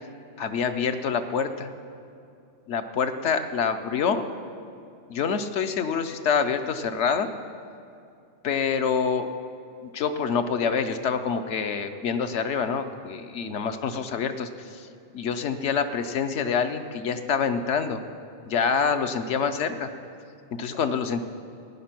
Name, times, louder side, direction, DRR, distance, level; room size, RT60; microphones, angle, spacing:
voice 1, 0.4-1.7 2.7-4.3 5.1-7.3 8.4-9.3 9.8-14.9 15.1-18.0 18.5-19.9 20.6-21.2, left 6 dB, 80° left, 8 dB, 1.1 m, -26 dB
15.0 x 10.0 x 6.0 m, 2.6 s
omnidirectional pair, 1.2 m